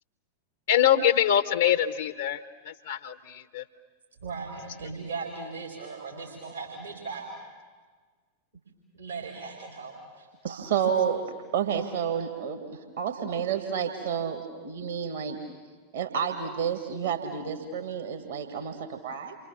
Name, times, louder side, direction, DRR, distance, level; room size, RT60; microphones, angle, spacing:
voice 1, 0.7-3.6, left 10 dB, 60° left, 9 dB, 0.7 m, -24 dB
voice 2, 4.2-7.3 8.9-10.7, right 4 dB, 75° right, -1 dB, 4.4 m, -38 dB
voice 3, 10.4-15.4 15.9-19.4, right 8 dB, 60° right, 5 dB, 2.1 m, -30 dB
29.5 x 25.0 x 7.3 m, 1.5 s
figure-of-eight pair, 90°, 0 cm